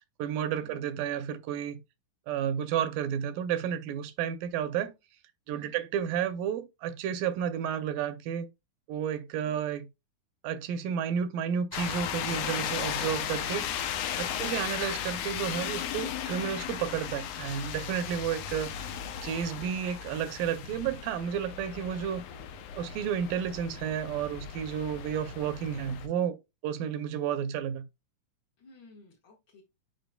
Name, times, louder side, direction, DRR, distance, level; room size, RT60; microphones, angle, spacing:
voice 1, 0.2-1.8 2.3-4.9 5.5-8.5 8.9-9.9 10.4-13.7 14.2-18.9 19.2-22.2 22.8-26.4 26.6-27.8, right 8 dB, 80° right, 2.3 m, -31 dB
voice 2, 5.5-5.8 9.3-9.6 19.5-19.8 28.6-29.6, left 3 dB, 50° left, 1.4 m, -55 dB
sound 1, 11.7-26.1, left 9 dB, 75° left, 2.0 m, -36 dB
8.9 x 5.0 x 2.2 m
omnidirectional pair, 3.9 m